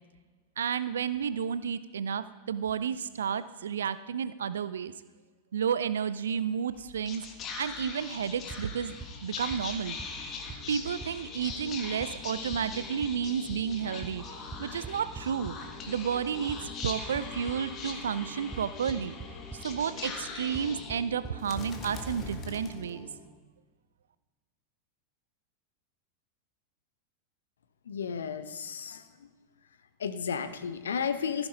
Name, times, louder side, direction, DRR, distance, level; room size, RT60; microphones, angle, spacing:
voice 1, 0.6-4.9 5.5-7.2 7.6-9.0 9.2-10.0 10.7-14.2 14.6-15.6 15.9-16.6 16.8-19.2 19.5-23.1, right 7 dB, 65° right, 15 dB, 0.4 m, -31 dB
Whispering, 6.7-23.3, left 4 dB, 30° left, 1.5 m, -41 dB
sound 1, 8.5-8.6 9.0-9.1 9.5-9.6 10.0-10.1 10.5-10.6 11.0-11.1 11.5-11.6 12.0-12.1 12.5-12.6 13.0-13.1 13.5-13.6 14.0-14.1 14.5-15.5 16.5-17.6 18.5-18.6 18.9-19.3 19.5-19.6 20.5-20.6 20.9-21.0 21.2-21.3 21.6-21.7, right 4 dB, 15° right, 1.0 m, -40 dB
voice 2, 27.9-29.0 30.0-31.5, left 6 dB, 65° left, 12 dB, 0.7 m, -33 dB
15.0 x 9.7 x 3.8 m, 1.3 s
figure-of-eight pair, 90°, 0 cm